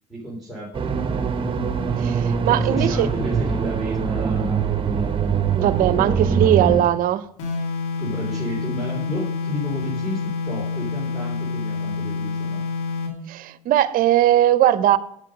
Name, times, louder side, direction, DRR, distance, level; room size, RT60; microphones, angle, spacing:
voice 1, 0.1-1.5 2.4-6.8 8.0-12.6, equal, ahead, 3.2 m, -33 dB
sound 1, 0.7-6.8, right 6 dB, 35° right, 1.5 m, -23 dB
voice 2, 2.0-3.1 5.5-7.2 13.3-15.0, right 12 dB, 70° right, 0.7 m, -19 dB
sound 2, 7.4-13.2, left 4 dB, 90° left, 2.5 m, -27 dB
8.1 x 7.5 x 5.1 m
supercardioid pair, 85°, 15 cm